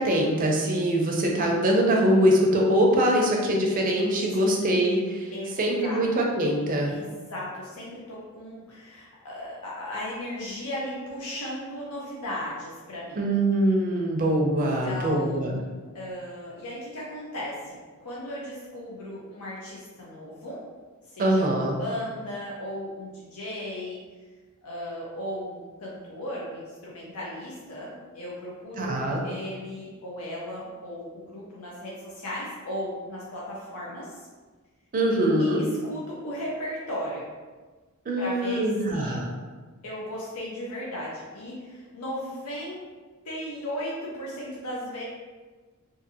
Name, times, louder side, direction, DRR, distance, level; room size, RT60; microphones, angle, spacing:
voice 1, 0.0-5.3 5.6-6.9 13.2-15.6 21.2-21.7 28.8-29.2 34.9-35.6 38.1-39.3, right 1 dB, 40° right, 0 dB, 0.5 m, -23 dB
voice 2, 4.3-4.7 5.3-6.0 6.9-13.3 14.6-15.7 15.9-20.6 21.0-24.0 24.6-34.3 35.4-37.3 38.2-39.2 39.8-42.8 43.2-45.0, left 1 dB, 75° left, -5 dB, 0.6 m, -36 dB
2.6 x 2.5 x 2.6 m, 1.3 s
head